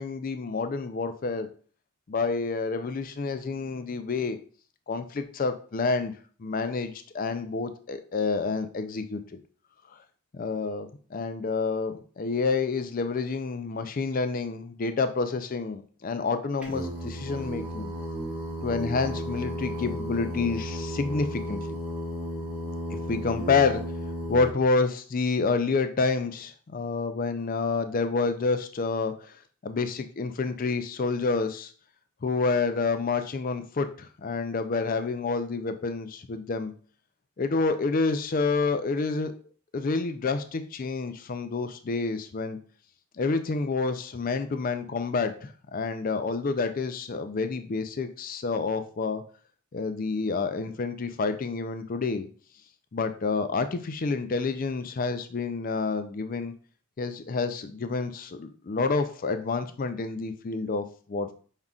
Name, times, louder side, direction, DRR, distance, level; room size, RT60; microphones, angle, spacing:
voice 1, 0.0-1.5 2.1-4.4 4.9-6.1 6.4-9.4 10.3-17.9 18.6-21.6 23.1-23.8 24.3-29.1 29.6-31.7 32.2-36.7 37.4-39.3 39.7-42.6 43.2-49.2 49.7-52.3 52.9-56.5 57.0-61.3, left 4 dB, 40° left, 9 dB, 0.4 m, -28 dB
Singing, 16.6-24.5, equal, 5° right, 0.7 m, -34 dB
5.4 x 3.6 x 2.4 m, 0.42 s
head